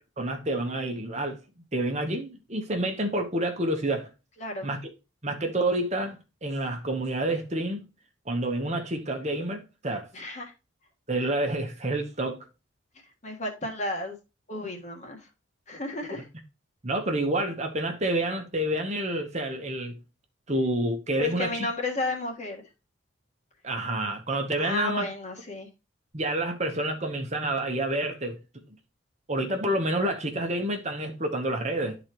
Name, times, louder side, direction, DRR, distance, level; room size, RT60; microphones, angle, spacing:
voice 1, 0.2-1.4 1.7-4.1 4.6-4.8 5.2-7.9 8.3-10.1 11.1-12.4 16.1-16.2 16.8-19.9 20.5-21.7 23.6-25.1 26.1-28.4 29.3-32.0, right 1 dB, 35° right, 1.0 m, -28 dB
voice 2, 4.4-4.7 10.1-10.5 13.2-14.2 14.5-15.3 15.7-16.2 21.2-22.7 24.6-25.7, left 2 dB, 35° left, 1.5 m, -32 dB
11.5 x 4.0 x 3.0 m
head